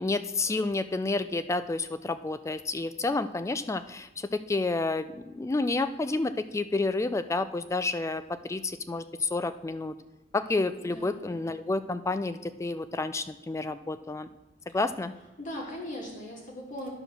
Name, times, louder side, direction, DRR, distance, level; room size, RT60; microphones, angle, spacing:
voice 1, 0.0-9.9 10.3-14.3 14.7-15.1, left 3 dB, 15° left, 12 dB, 0.3 m, -30 dB
voice 2, 10.8-11.3 15.4-16.9, equal, 45° left, -2 dB, 2.6 m, -39 dB
10.5 x 4.9 x 6.5 m, 1.0 s
head